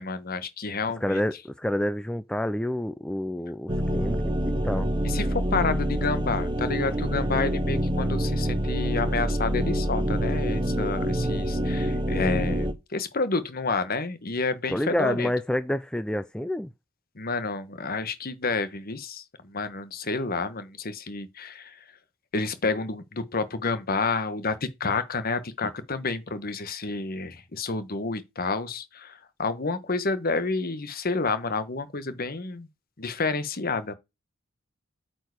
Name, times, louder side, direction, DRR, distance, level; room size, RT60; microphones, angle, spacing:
voice 1, 0.0-1.2 5.0-15.3 17.2-21.7 22.3-32.7 33.0-33.9, left 3 dB, 45° left, 1.1 m, -29 dB
voice 2, 1.0-4.9 14.7-16.7, left 1 dB, 5° left, 0.3 m, -28 dB
sound 1, 3.7-12.7, equal, 25° right, 0.8 m, -26 dB
8.9 x 4.6 x 4.7 m
head